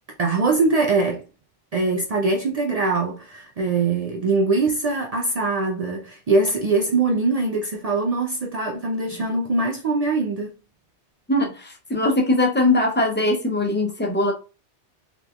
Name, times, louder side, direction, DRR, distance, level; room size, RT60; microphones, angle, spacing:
voice 1, 0.2-1.2 1.7-10.5, right 3 dB, 75° right, 0.3 m, -22 dB
voice 2, 11.3-14.3, left 2 dB, 15° left, 0.4 m, -21 dB
3.4 x 2.9 x 2.4 m
omnidirectional pair, 1.2 m